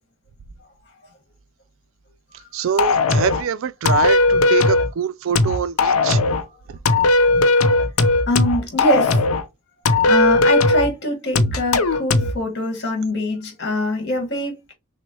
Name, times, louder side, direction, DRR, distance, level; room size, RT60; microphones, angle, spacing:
voice 1, 2.5-6.2 6.7-6.8, right 7 dB, 60° right, 0.3 m, -24 dB
sound 1, 2.8-3.4 3.9-4.9 5.4-6.4 6.9-9.4 9.9-10.9 11.4-12.4, left 3 dB, 75° left, 0.6 m, -17 dB
voice 2, 8.3-9.2 10.1-14.7, left 1 dB, 50° left, 1.6 m, -23 dB
6.1 x 2.1 x 2.9 m
head